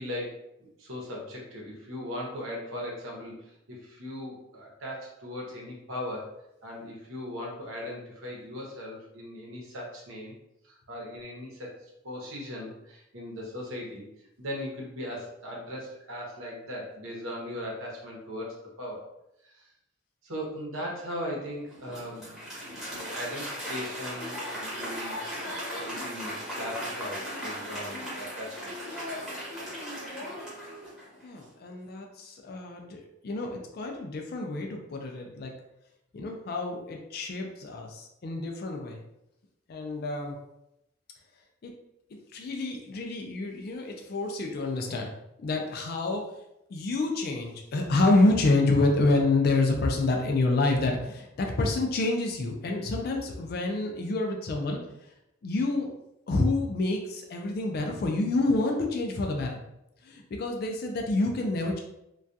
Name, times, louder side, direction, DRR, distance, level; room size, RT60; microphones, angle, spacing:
voice 1, 0.0-6.3 6.6-10.3 10.6-14.1 14.4-19.1 19.4-19.7 20.2-22.4 22.7-29.0, left 1 dB, 90° right, -2 dB, 0.8 m, -39 dB
Applause, 21.7-31.2, equal, 5° right, 0.7 m, -37 dB
voice 2, 31.2-35.5 36.1-39.0 39.7-40.4 41.6-41.7 42.3-45.1 45.4-46.3 46.7-54.8 55.4-55.9 56.3-59.6 60.0-61.8, left 2 dB, 50° left, 1 dB, 0.3 m, -28 dB
2.3 x 2.2 x 2.6 m, 0.85 s
head